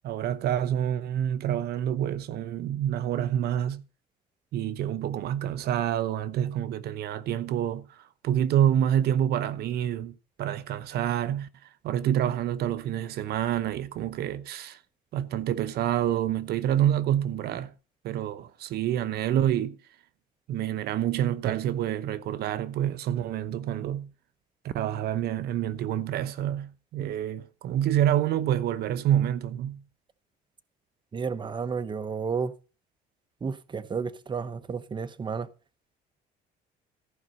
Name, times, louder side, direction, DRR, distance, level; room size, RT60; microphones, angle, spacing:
voice 1, 0.0-3.8 4.5-14.8 15.1-17.7 18.0-19.8 20.5-24.1 24.6-29.8, right 11 dB, 70° right, 0.9 m, -27 dB
voice 2, 31.1-32.5 33.4-35.5, right 5 dB, 25° right, 0.9 m, -32 dB
14.5 x 5.2 x 7.7 m
cardioid pair, 110°, 17 cm